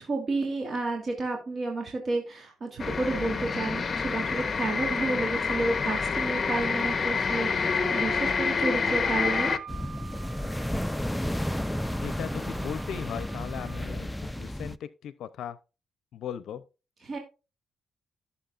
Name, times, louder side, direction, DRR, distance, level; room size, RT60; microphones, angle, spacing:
voice 1, 0.0-9.5 17.0-17.2, right 2 dB, 40° right, 2.9 m, -31 dB
sound 1, 2.8-9.6, left 5 dB, 35° left, 1.1 m, -27 dB
Wind instrument woodwind instrument, 8.9-13.8, right 8 dB, 75° right, 4.0 m, -47 dB
sound 2, 9.7-14.8, equal, 5° left, 0.4 m, -32 dB
voice 2, 12.0-15.6 16.1-16.6, left 9 dB, 75° left, 0.6 m, -38 dB
15.5 x 7.3 x 2.5 m
cardioid pair, 90°, 0 cm